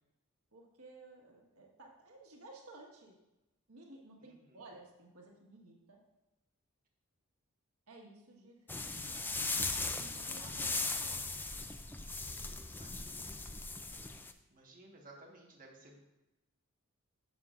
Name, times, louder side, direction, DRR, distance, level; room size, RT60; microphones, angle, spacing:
voice 1, 0.5-3.1 3.7-6.0 7.9-9.7 10.0-11.2, right 2 dB, 85° right, 0 dB, 1.5 m, -55 dB
voice 2, 4.2-4.6 12.1-13.5 14.5-16.0, right 2 dB, 40° right, -2 dB, 1.4 m, -58 dB
sound 1, 8.7-14.3, left 3 dB, 10° left, 0.3 m, -38 dB
11.5 x 7.2 x 2.5 m, 1.0 s
head